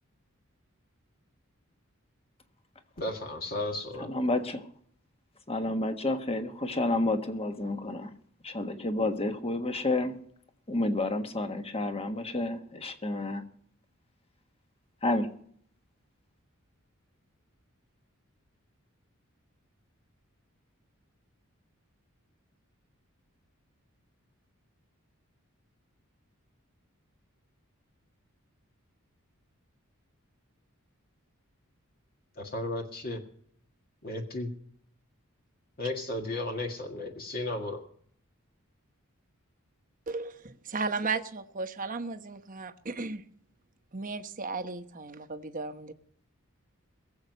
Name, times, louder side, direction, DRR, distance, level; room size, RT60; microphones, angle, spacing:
voice 1, 3.0-4.1 32.4-33.2 34.0-34.5 35.8-37.8, left 2 dB, 45° left, 3 dB, 1.8 m, -34 dB
voice 2, 4.0-4.7 5.5-8.1 8.4-10.1 10.7-13.4 15.0-15.3, left 2 dB, 30° left, 7 dB, 1.4 m, -30 dB
voice 3, 40.1-43.2 43.9-45.9, right 4 dB, 40° right, 8 dB, 1.0 m, -35 dB
21.5 x 8.0 x 5.5 m, 0.63 s
head